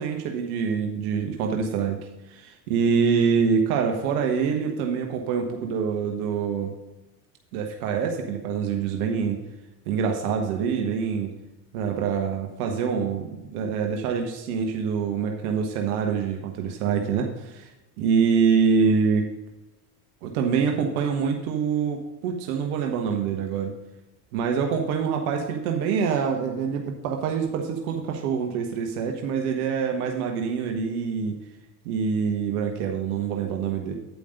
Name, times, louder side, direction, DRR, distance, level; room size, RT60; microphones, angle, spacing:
voice 1, 0.0-6.7 7.5-9.4 9.9-11.3 11.7-17.7 18.0-19.3 20.2-23.7 24.3-31.4 31.8-33.9, right 6 dB, 70° right, 3 dB, 1.2 m, -25 dB
9.3 x 5.2 x 5.1 m, 1.0 s
hypercardioid pair, 85°, 46 cm